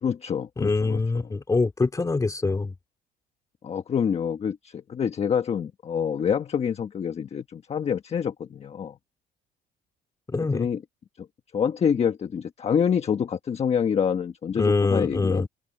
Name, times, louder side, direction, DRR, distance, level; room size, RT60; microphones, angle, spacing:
voice 1, 0.0-1.0 3.6-9.0 10.5-10.8 11.2-11.3 11.5-15.5, left 7 dB, 40° left, 1.3 m, -26 dB
voice 2, 0.6-2.7 10.3-10.7 14.6-15.5, left 3 dB, 20° left, 2.4 m, -24 dB
cardioid pair, 110°, 17 cm